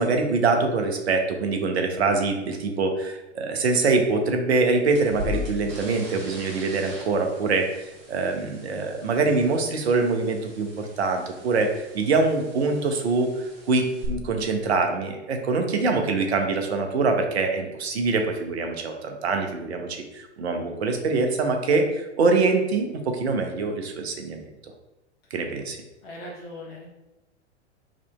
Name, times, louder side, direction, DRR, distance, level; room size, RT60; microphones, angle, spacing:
voice 1, 0.0-19.9 20.1-24.4 25.3-25.8, right 3 dB, 65° right, 4 dB, 0.7 m, -24 dB
sound 1, 4.9-14.1, left 1 dB, 40° right, 1.1 m, -40 dB
voice 2, 26.0-26.9, left 1 dB, 55° left, -4 dB, 1.2 m, -39 dB
4.8 x 2.8 x 2.3 m, 1.0 s
figure-of-eight pair, 100°, 35 cm